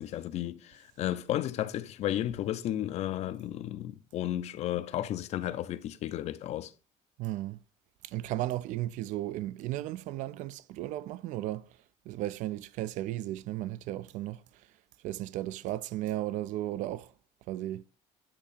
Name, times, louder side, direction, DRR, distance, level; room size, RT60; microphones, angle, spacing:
voice 1, 0.0-6.7, left 12 dB, 55° left, 0.5 m, -33 dB
voice 2, 7.2-7.6 8.0-11.7 12.1-14.4 15.0-17.1 17.5-17.8, right 14 dB, 75° right, 0.4 m, -35 dB
8.5 x 2.9 x 4.0 m
cardioid pair, 130°, 13 cm